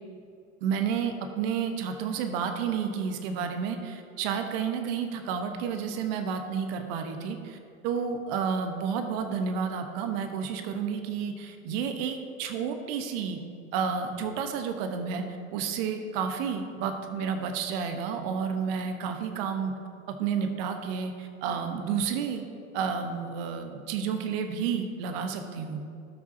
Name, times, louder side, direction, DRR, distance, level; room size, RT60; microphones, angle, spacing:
voice 1, 0.6-7.6 7.8-13.4 13.7-15.2 15.5-19.7 20.1-22.4 22.7-25.8, right 6 dB, 45° right, 6 dB, 1.1 m, -31 dB
18.0 x 6.0 x 2.8 m, 2.4 s
hypercardioid pair, 100°, 41 cm